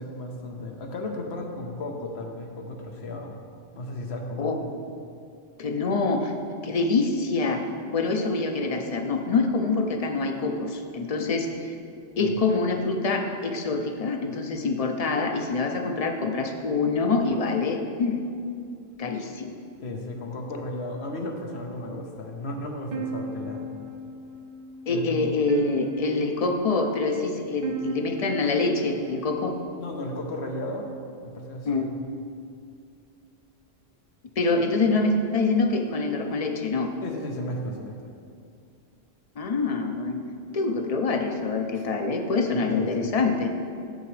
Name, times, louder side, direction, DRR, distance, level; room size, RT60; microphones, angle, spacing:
voice 1, 0.0-3.4 3.8-4.6 12.2-12.3 19.8-23.7 24.9-25.2 29.8-30.9 31.2-32.1 37.0-38.0 41.7-41.9 42.7-43.1, left 1 dB, 85° left, 2 dB, 1.1 m, -34 dB
voice 2, 5.6-6.3 6.6-11.7 12.2-18.2 19.0-19.6 24.9-29.6 31.7-31.9 34.4-36.9 39.4-40.2 40.5-43.5, left 3 dB, 45° left, 4 dB, 0.6 m, -25 dB
sound 1, 22.9-30.0, right 3 dB, 50° right, 0.7 m, -36 dB
9.1 x 6.8 x 3.2 m, 2.4 s
omnidirectional pair, 1.1 m